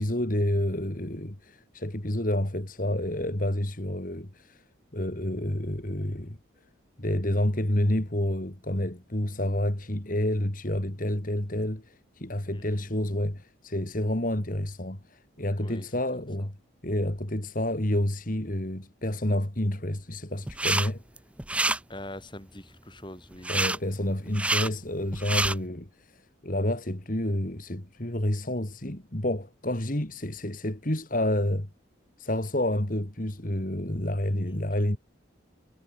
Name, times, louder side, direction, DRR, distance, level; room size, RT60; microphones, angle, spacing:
voice 1, 0.0-4.6 4.9-6.4 7.0-16.5 16.8-21.0 23.5-31.7 32.2-35.0, left 1 dB, 40° left, 2.5 m, -29 dB
voice 2, 12.5-12.9 15.6-15.9 16.1-16.5 21.9-23.5 34.5-34.6, left 1 dB, 25° left, 7.8 m, -44 dB
sound 1, 20.5-20.9 21.2-21.8 23.4-23.8 24.3-24.7 25.1-25.5, right 2 dB, 5° right, 0.4 m, -26 dB
head